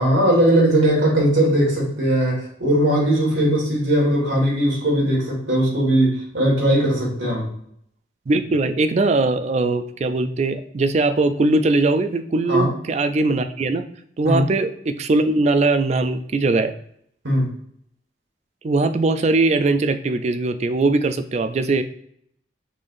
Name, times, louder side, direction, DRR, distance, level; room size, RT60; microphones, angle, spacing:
voice 1, 0.0-7.5 12.5-12.7 14.2-14.4 17.2-17.5, right 1 dB, 85° right, -2 dB, 1.8 m, -19 dB
voice 2, 8.3-13.8 14.2-16.7 18.6-21.8, right 2 dB, 35° right, 9 dB, 0.3 m, -20 dB
5.4 x 3.4 x 2.6 m, 0.68 s
head